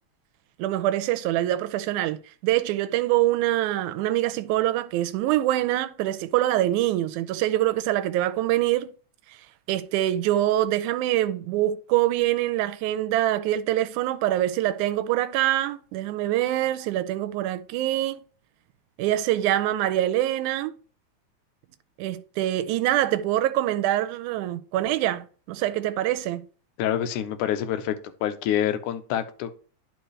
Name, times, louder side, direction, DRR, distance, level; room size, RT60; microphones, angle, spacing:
voice 1, 0.6-8.9 9.7-18.2 19.0-20.7 22.0-26.4, right 14 dB, 85° right, 2.0 m, -24 dB
voice 2, 26.8-28.0 28.2-29.5, left 10 dB, 85° left, 2.2 m, -26 dB
10.5 x 4.8 x 3.2 m
omnidirectional pair, 3.4 m